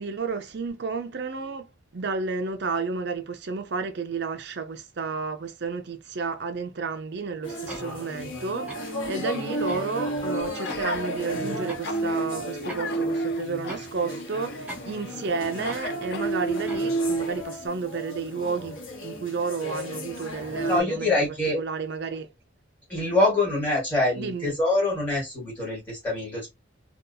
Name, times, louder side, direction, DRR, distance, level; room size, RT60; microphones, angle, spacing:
voice 1, 0.0-21.1 21.6-22.3 24.2-24.5, right 4 dB, 55° right, 0.5 m, -31 dB
sound 1, 7.4-20.8, right 2 dB, 80° left, 1.2 m, -32 dB
sound 2, 7.7-7.9 8.7-8.9 9.7-9.9 10.7-10.9 11.7-11.9 12.7-12.9 13.7-13.9 14.7-14.9 15.7-15.9 16.7-16.9, right 1 dB, 10° right, 0.6 m, -41 dB
Gasp, 10.6-11.0 11.6-12.3 12.6-15.1 15.6-16.7 17.3-17.4, left 5 dB, 50° left, 0.4 m, -39 dB
voice 2, 20.7-21.6 22.9-26.5, left 2 dB, 10° left, 1.5 m, -25 dB
2.7 x 2.3 x 2.6 m
head